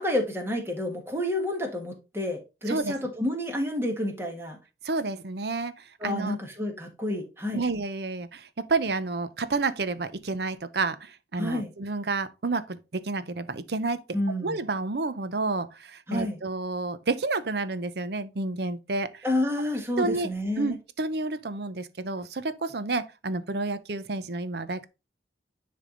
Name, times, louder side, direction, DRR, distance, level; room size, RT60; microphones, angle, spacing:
voice 1, 0.0-4.6 6.0-7.6 11.4-11.7 14.1-14.6 16.1-16.4 19.2-20.7, left 1 dB, 15° right, 1.5 m, -29 dB
voice 2, 4.8-6.4 7.5-14.0 14.4-19.3 20.0-20.3 20.6-24.9, right 3 dB, 60° right, 0.7 m, -30 dB
9.9 x 3.4 x 3.8 m
head